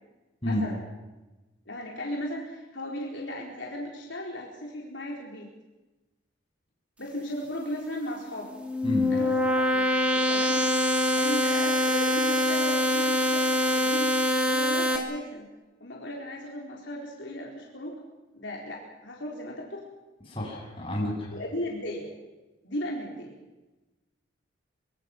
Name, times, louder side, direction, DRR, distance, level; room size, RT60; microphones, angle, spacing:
voice 1, 0.4-0.8 1.7-5.5 7.0-8.5 9.1-9.8 10.1-10.6 11.2-14.2 14.4-15.5 15.8-18.0 18.3-19.8 20.9-21.0 21.3-22.1 22.6-23.3, left 1 dB, 65° left, -2 dB, 4.3 m, -36 dB
sound 1, 8.5-15.0, left 1 dB, 5° right, 3.1 m, -24 dB
voice 2, 20.3-21.3, left 1 dB, 25° left, -1 dB, 7.4 m, -30 dB
25.0 x 24.0 x 6.1 m, 1.1 s
head